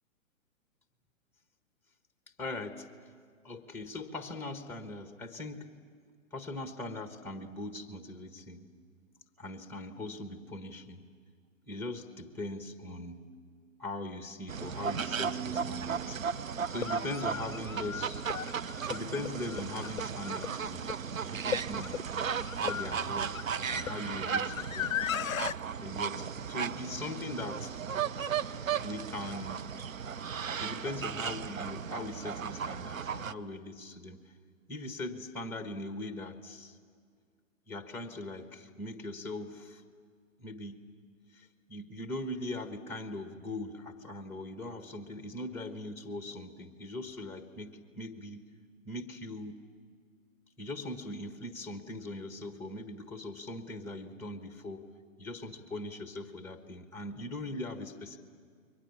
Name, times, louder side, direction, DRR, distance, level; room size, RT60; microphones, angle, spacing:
voice 1, 2.4-2.9 3.4-5.7 6.3-8.7 9.4-11.0 11.7-13.2 13.8-16.2 16.7-18.2 18.9-20.9 21.2-22.0 22.6-23.4 23.7-25.0 25.8-27.7 28.7-29.7 30.6-34.2 34.7-36.8 37.7-39.8 40.4-40.8 41.3-48.4 48.8-49.6 50.6-54.8 55.2-58.2, left 2 dB, 5° left, 8 dB, 1.5 m, -40 dB
sound 1, 14.5-33.3, right 7 dB, 75° right, 0.8 m, -35 dB
sound 2, 15.5-15.6 16.6-25.6, left 9 dB, 75° left, 0.6 m, -38 dB
29.5 x 23.0 x 7.3 m, 2.1 s
figure-of-eight pair, 125°, 41 cm